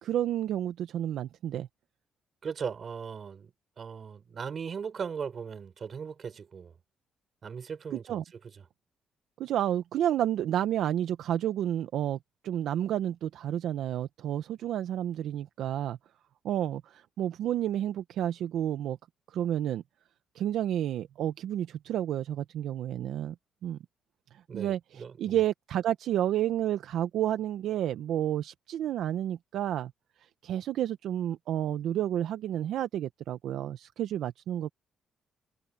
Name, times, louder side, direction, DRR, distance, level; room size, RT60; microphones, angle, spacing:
voice 1, 0.0-1.7 7.9-8.2 9.4-12.2 12.4-16.0 16.4-19.0 19.3-19.8 20.3-23.3 23.6-23.8 24.3-29.9 30.4-34.7, right 11 dB, 75° right, 0.8 m, -30 dB
voice 2, 2.4-3.5 3.8-6.7 7.4-8.2 24.5-25.4, right 6 dB, 45° right, 5.4 m, -38 dB
cardioid pair, 90°, 0 cm